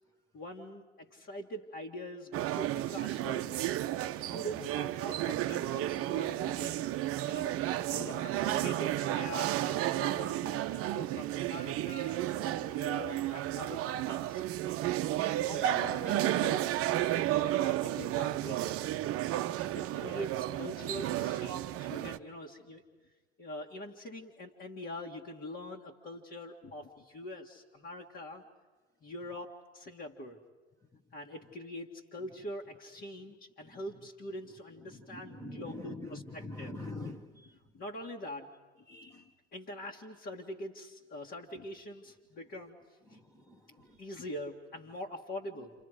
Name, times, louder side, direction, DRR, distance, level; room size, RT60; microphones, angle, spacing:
voice 1, 0.3-3.7 4.3-6.9 7.3-7.6 8.1-12.2 12.6-14.4 15.2-16.8 17.3-19.2 19.8-22.8 23.4-28.4 29.0-30.4 31.1-36.7 37.7-38.5 39.0-39.2 39.5-42.8 43.1-43.2 44.0-45.7, left 1 dB, 35° left, -2 dB, 2.0 m, -44 dB
sound 1, 2.3-22.2, right 13 dB, 40° right, 0.8 m, -32 dB
voice 2, 7.9-8.6 30.9-31.0 33.6-33.8 34.9-37.6 38.8-39.3 43.1-44.1, left 2 dB, 10° left, 0 dB, 1.3 m, -45 dB
30.0 x 28.0 x 5.0 m, 1.3 s
figure-of-eight pair, 80°, 35 cm